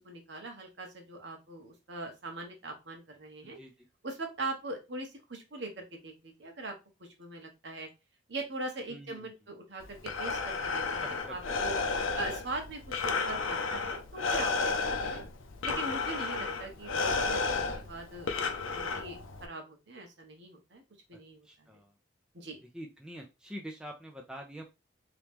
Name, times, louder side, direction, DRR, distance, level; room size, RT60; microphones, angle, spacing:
voice 1, 0.0-3.6 4.0-6.7 7.0-7.9 8.3-11.0 11.3-11.7 12.2-14.7 15.0-15.2 15.6-20.8 21.1-21.8 22.3-22.6, right 2 dB, 65° right, 3 dB, 1.1 m, -41 dB
voice 2, 8.9-9.3 11.0-11.4 21.1-21.9 22.6-24.6, equal, 5° right, 1 dB, 0.4 m, -45 dB
Breathing, 9.8-19.5, left 4 dB, 90° left, 0.6 m, -32 dB
3.1 x 2.9 x 3.5 m, 0.26 s
head